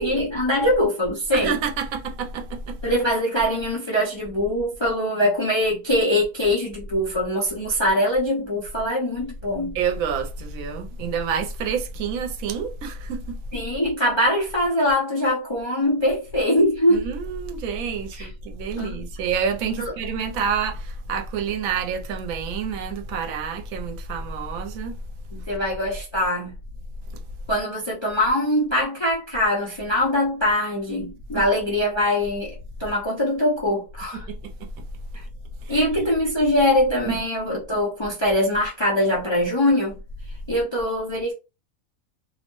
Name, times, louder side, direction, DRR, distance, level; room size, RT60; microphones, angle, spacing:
voice 1, 0.0-1.6 2.8-9.8 13.5-17.1 18.1-18.3 18.8-19.0 19.8-19.9 25.3-26.6 27.5-34.3 35.1-35.2 35.7-39.9 40.5-41.3, left 1 dB, 40° left, 0.4 m, -23 dB
voice 2, 1.3-2.8 9.7-13.3 16.9-25.0 34.3-34.4 35.6-35.8 37.1-37.2, right 6 dB, 80° right, 1.0 m, -28 dB
2.6 x 2.1 x 2.9 m
omnidirectional pair, 1.5 m